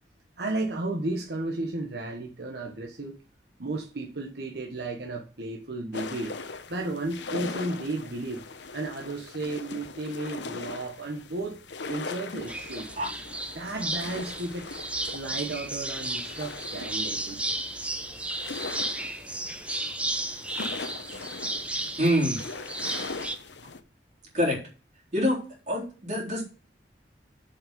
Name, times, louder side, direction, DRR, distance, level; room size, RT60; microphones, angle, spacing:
voice 1, 0.4-3.1 3.6-6.3 6.7-8.4 8.7-12.9 13.5-14.7 15.1-17.6, right 2 dB, 65° right, 0 dB, 1.3 m, -33 dB
sound 1, 5.9-23.8, left 4 dB, 80° left, 0.9 m, -40 dB
sound 2, 12.5-23.4, right 2 dB, 5° right, 0.8 m, -34 dB
voice 2, 22.0-22.4 24.3-24.6 25.1-25.4 25.7-26.4, equal, 40° right, -3 dB, 3.9 m, -25 dB
7.4 x 5.7 x 6.9 m, 0.35 s
head